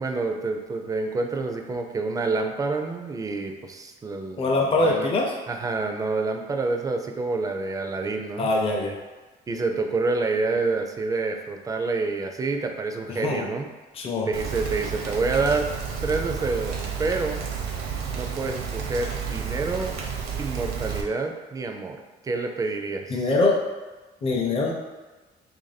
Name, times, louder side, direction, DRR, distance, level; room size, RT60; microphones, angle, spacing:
voice 1, 0.0-5.1 5.5-9.0 9.5-13.7 14.3-15.7 16.0-17.4 18.1-20.0 20.4-22.0 22.2-23.3, right 3 dB, 20° right, 4 dB, 0.4 m, -28 dB
voice 2, 4.4-5.3 8.4-8.9 13.1-13.5 13.9-14.3 23.1-23.6 24.2-24.7, left 2 dB, 35° left, -1 dB, 0.6 m, -23 dB
Rain, 14.3-21.0, right 7 dB, 70° right, 0.7 m, -31 dB
2.9 x 2.6 x 4.0 m, 1.2 s
cardioid pair, 110°, 17 cm